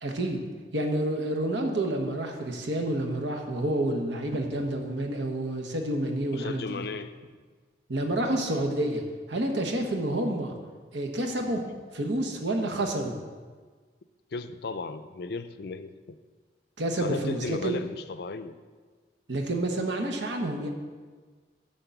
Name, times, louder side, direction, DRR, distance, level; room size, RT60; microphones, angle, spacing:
voice 1, 0.0-0.4 0.7-6.8 7.9-9.0 9.3-10.5 10.9-11.7 11.9-13.1 16.8-17.8 19.3-20.7, right 1 dB, 85° right, 3 dB, 1.1 m, -29 dB
voice 2, 6.3-7.1 14.3-16.2 17.0-18.5, left 4 dB, 60° left, 11 dB, 0.4 m, -35 dB
9.7 x 3.9 x 7.0 m, 1.5 s
head